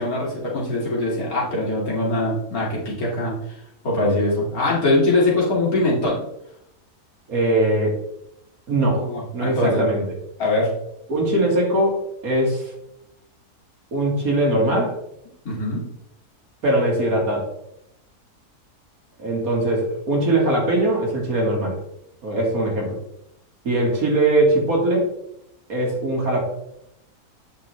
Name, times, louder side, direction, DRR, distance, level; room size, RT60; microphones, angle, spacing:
voice 1, 0.0-3.3 3.8-6.2 9.0-9.8 10.4-10.7 15.4-15.8, left 2 dB, 65° left, -5 dB, 2.7 m, -22 dB
voice 2, 7.3-7.9 8.7-9.0 9.3-10.1 11.1-12.7 13.9-15.0 16.6-17.5 19.2-21.8 22.2-23.0 23.6-25.1 25.7-26.4, right 1 dB, 65° right, -1 dB, 2.2 m, -21 dB
8.3 x 5.4 x 3.1 m, 0.80 s
omnidirectional pair, 1.6 m